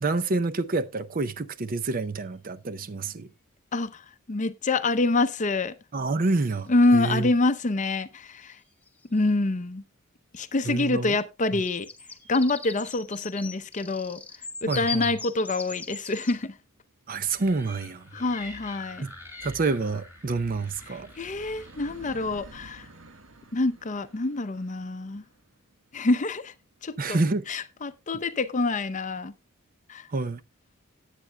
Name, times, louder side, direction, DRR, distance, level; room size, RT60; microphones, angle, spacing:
voice 1, 0.0-3.3 5.9-7.3 10.6-11.2 11.5-11.6 14.7-15.1 17.1-18.0 19.0-19.1 19.4-21.1 27.0-27.5 30.1-30.4, right 3 dB, 40° right, 0.6 m, -28 dB
sound 1, 1.9-2.0 6.3-6.8 8.5-8.6 8.9-9.2 11.5-16.4, left 4 dB, 5° left, 1.1 m, -39 dB
voice 2, 3.7-5.7 6.7-8.6 9.1-9.8 10.3-11.9 12.3-14.2 14.6-16.6 18.1-19.0 20.8-22.9 23.5-25.2 25.9-26.5 26.8-27.2 27.5-29.3 29.9-30.1, left 2 dB, 35° left, 0.6 m, -26 dB
sound 2, 16.8-16.9 17.1-28.6, right 2 dB, 65° right, 1.4 m, -54 dB
sound 3, 17.3-22.8, left 2 dB, 10° right, 4.4 m, -46 dB
18.0 x 8.4 x 2.2 m
head